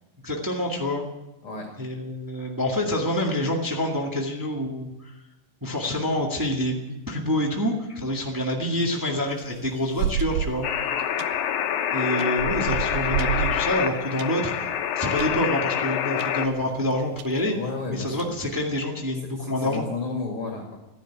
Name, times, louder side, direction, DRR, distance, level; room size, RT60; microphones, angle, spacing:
voice 1, 0.2-1.0 1.8-5.1 5.6-10.7 11.9-14.7 14.9-17.5 17.9-19.8, left 1 dB, 20° right, -1 dB, 0.5 m, -27 dB
voice 2, 1.4-1.7 17.5-18.3 19.4-20.8, left 3 dB, 40° left, 0 dB, 2.8 m, -32 dB
sound 1, 9.3-10.7 11.2-11.5 12.2-14.3 14.8-14.9 15.2-15.5 16.2-16.3 16.6-16.7 17.2-17.3 18.0-18.5, right 11 dB, 75° right, 1.9 m, -29 dB
sound 2, 10.6-16.5, left 9 dB, 80° left, 2.8 m, -26 dB
14.5 x 10.5 x 9.1 m, 0.98 s
omnidirectional pair, 4.1 m